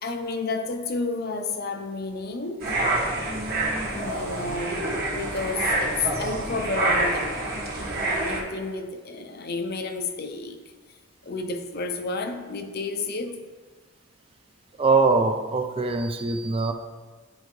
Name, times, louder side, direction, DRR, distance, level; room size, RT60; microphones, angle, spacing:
voice 1, 0.0-2.7 3.9-7.4 8.3-10.6 11.2-13.4, left 3 dB, 50° left, 0.6 m, -31 dB
sound 1, 2.6-8.4, right 2 dB, 50° right, 1.4 m, -27 dB
voice 2, 14.8-16.7, right 3 dB, 30° right, 0.4 m, -22 dB
10.5 x 4.5 x 3.1 m
head